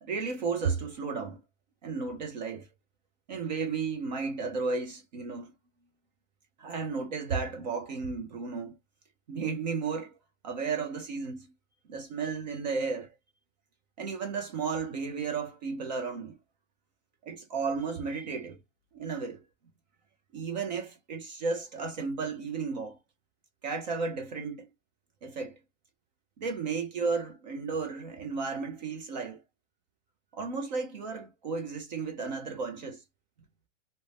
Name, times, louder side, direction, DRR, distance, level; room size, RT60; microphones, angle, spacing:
voice 1, 0.0-1.4 1.8-2.7 3.3-5.5 6.6-8.7 9.3-10.1 10.4-11.5 11.9-13.1 14.0-16.4 17.2-18.6 18.9-19.4 20.3-23.0 23.6-24.7 25.2-25.6 26.4-29.4 30.3-33.0, right 5 dB, 35° right, 0.4 m, -33 dB
2.4 x 2.1 x 3.2 m
hypercardioid pair, 160°, 37 cm